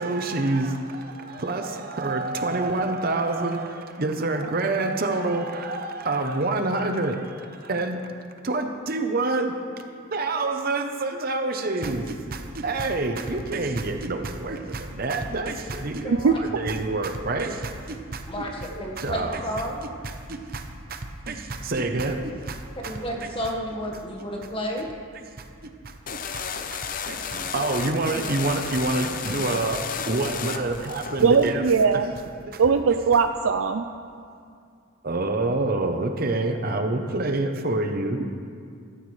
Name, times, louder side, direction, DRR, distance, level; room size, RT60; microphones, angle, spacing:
voice 1, 0.0-8.0 8.4-9.5 10.1-16.0 16.4-23.3 25.1-25.5 25.8-25.9 26.3-26.4 26.7-26.8 27.1-29.8 30.1-31.6 31.9-32.0 32.5-32.6 35.0-38.3, right 2 dB, 45° right, 5 dB, 0.8 m, -27 dB
voice 2, 18.3-19.8 22.8-24.9, equal, 25° left, 0 dB, 1.4 m, -31 dB
sound 1, 26.1-31.5, left 6 dB, 40° left, 0.6 m, -33 dB
voice 3, 31.2-32.1 32.6-33.8, right 5 dB, 80° right, 7 dB, 0.5 m, -20 dB
16.5 x 14.0 x 3.2 m, 2.3 s
head